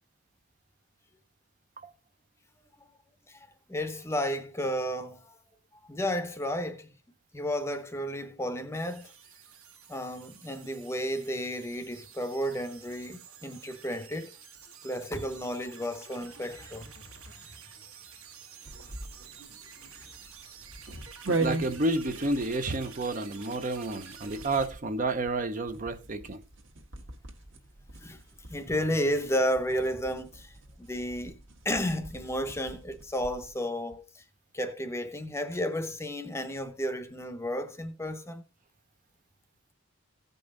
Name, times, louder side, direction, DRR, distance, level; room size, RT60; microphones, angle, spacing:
voice 1, 3.3-5.4 5.9-6.9 7.3-9.1 9.9-14.3 14.8-16.9 17.2-17.5 28.0-28.2 28.5-34.2 34.5-38.4, equal, 10° left, 0.7 m, -32 dB
sound 1, 8.7-24.7, right 7 dB, 75° right, 1.6 m, -50 dB
sound 2, 18.6-33.6, right 3 dB, 55° right, 1.5 m, -40 dB
voice 2, 21.3-26.4, right 2 dB, 35° right, 0.6 m, -30 dB
15.5 x 5.4 x 3.8 m
head